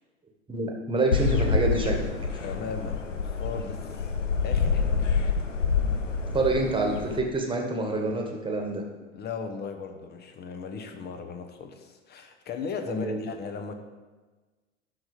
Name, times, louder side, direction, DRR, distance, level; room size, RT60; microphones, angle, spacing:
voice 1, 0.5-2.1 6.3-8.8 12.9-13.2, right 2 dB, 15° right, 2 dB, 1.6 m, -27 dB
sound 1, 1.1-7.2, left 5 dB, 90° left, 0.7 m, -27 dB
voice 2, 2.4-4.1 4.4-5.0 9.1-13.7, left 5 dB, 25° left, 7 dB, 1.1 m, -37 dB
12.5 x 4.1 x 4.9 m, 1.3 s
figure-of-eight pair, 85°, 36 cm